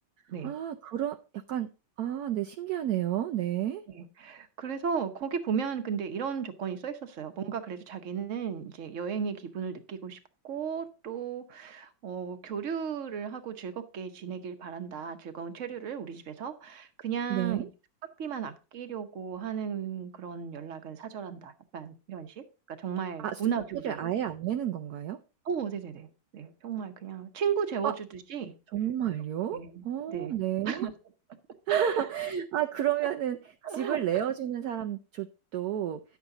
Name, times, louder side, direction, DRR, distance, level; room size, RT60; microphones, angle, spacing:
voice 1, 0.4-1.7 2.0-3.8 17.3-17.7 23.2-23.4 23.7-25.2 27.8-27.9 28.7-30.9 31.7-33.4 33.7-35.3 35.5-36.0, right 11 dB, 70° right, 0.9 m, -31 dB
voice 2, 3.9-10.2 10.4-17.7 18.2-24.0 25.4-28.5 29.5-30.4 30.6-30.9 31.7-32.4 33.6-34.0, right 7 dB, 50° right, 1.1 m, -35 dB
10.5 x 7.3 x 3.9 m
omnidirectional pair, 2.1 m